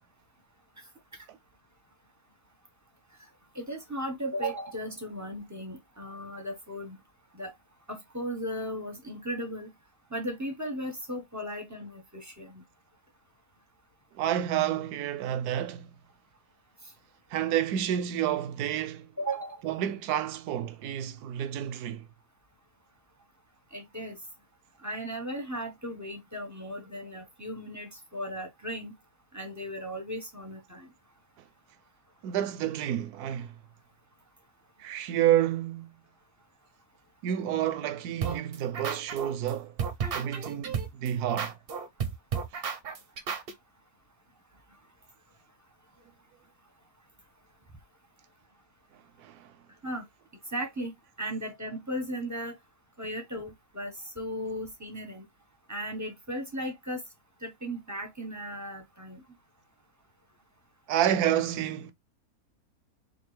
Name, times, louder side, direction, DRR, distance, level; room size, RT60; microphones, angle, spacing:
voice 1, 3.5-7.0 7.3-7.5 7.9-9.7 10.1-12.6 19.2-19.6 23.7-24.2 24.8-28.9 29.3-30.9 49.8-50.0 50.5-52.5 53.0-55.2 55.7-57.0 57.4-59.2, equal, 15° right, 0.7 m, -36 dB
voice 2, 14.2-15.9 17.3-19.1 19.6-22.0 32.2-33.5 34.8-36.0 37.2-39.7 40.1-41.5 49.2-49.5 60.9-61.9, right 11 dB, 75° right, 1.1 m, -29 dB
sound 1, 38.2-39.5 39.8-43.5, right 6 dB, 50° right, 0.7 m, -32 dB
4.4 x 2.6 x 3.2 m
omnidirectional pair, 1.7 m